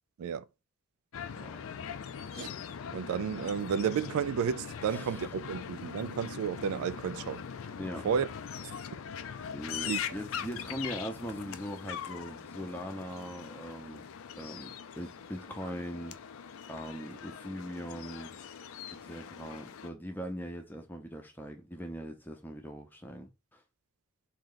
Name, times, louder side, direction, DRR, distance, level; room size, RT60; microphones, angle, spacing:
sound 1, 1.1-19.9, left 7 dB, 75° left, 0.4 m, -42 dB
voice 1, 2.9-7.4 8.0-8.3 9.9-10.0, right 7 dB, 85° right, 0.3 m, -32 dB
voice 2, 4.9-5.3 7.8-8.1 9.5-14.0 14.4-16.2 16.7-18.3 19.0-23.6, equal, 10° left, 0.6 m, -41 dB
3.2 x 2.8 x 3.8 m
head